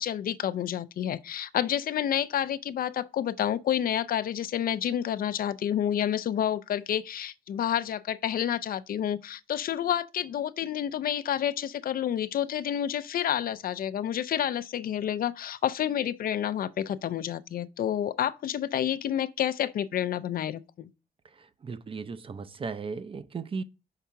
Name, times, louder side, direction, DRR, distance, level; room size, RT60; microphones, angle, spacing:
voice 1, 0.0-20.9, left 10 dB, 65° left, 0.4 m, -29 dB
voice 2, 21.3-23.6, right 5 dB, 35° right, 0.5 m, -36 dB
5.7 x 3.6 x 5.7 m
cardioid pair, 115°, 17 cm